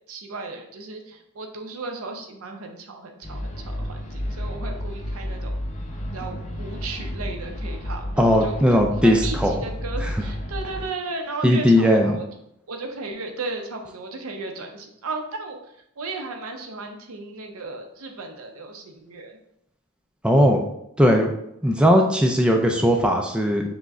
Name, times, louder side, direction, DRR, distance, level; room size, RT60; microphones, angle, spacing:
voice 1, 0.1-5.6 6.1-12.2 12.7-15.6 16.0-19.4, right 3 dB, 75° right, 4 dB, 0.7 m, -35 dB
sound 1, 3.2-10.9, equal, 35° left, 0.8 m, -31 dB
voice 2, 8.2-9.5 10.0-10.1 11.4-12.2 20.2-20.6 21.0-21.3 21.6-23.6, equal, 5° right, 2 dB, 0.4 m, -18 dB
6.0 x 2.2 x 3.6 m, 0.78 s
head